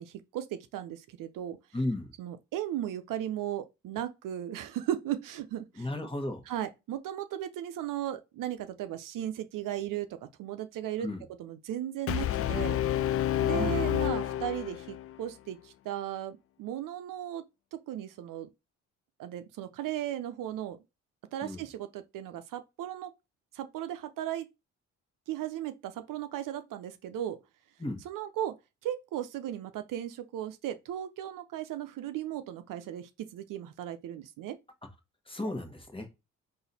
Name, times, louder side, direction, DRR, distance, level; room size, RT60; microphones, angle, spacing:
voice 1, 0.0-1.6 2.2-5.9 6.5-11.1 11.4-12.8 13.4-17.4 17.7-18.5 19.2-20.8 21.3-23.1 23.5-24.5 25.3-27.4 28.0-28.6 28.8-34.6, right 11 dB, 65° right, 0.6 m, -36 dB
voice 2, 1.7-2.1 5.8-6.4 11.0-11.2 13.5-14.0 21.4-21.6 27.8-28.0 35.3-36.1, left 1 dB, 15° left, 1.3 m, -34 dB
Brass instrument, 12.1-15.2, left 12 dB, 40° left, 0.4 m, -29 dB
3.9 x 2.7 x 4.1 m
supercardioid pair, 55°, 35 cm